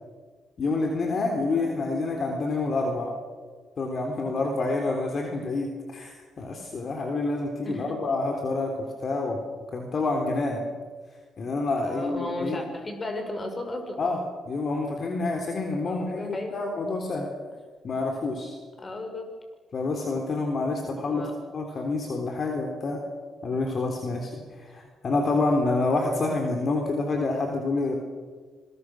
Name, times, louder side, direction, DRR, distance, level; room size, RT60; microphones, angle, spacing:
voice 1, 0.6-3.1 3.8-9.4 9.7-10.7 11.4-12.6 14.0-14.2 14.5-17.3 17.8-18.6 19.7-21.3 21.5-23.0 23.4-24.3 24.6-27.9, left 3 dB, 50° left, 2 dB, 3.7 m, -28 dB
voice 2, 7.6-8.0 11.8-14.0 15.8-16.5 18.8-19.3 21.1-21.3, left 2 dB, 30° left, 5 dB, 5.9 m, -34 dB
26.5 x 22.5 x 6.4 m, 1.5 s
cardioid pair, 100°, 0 cm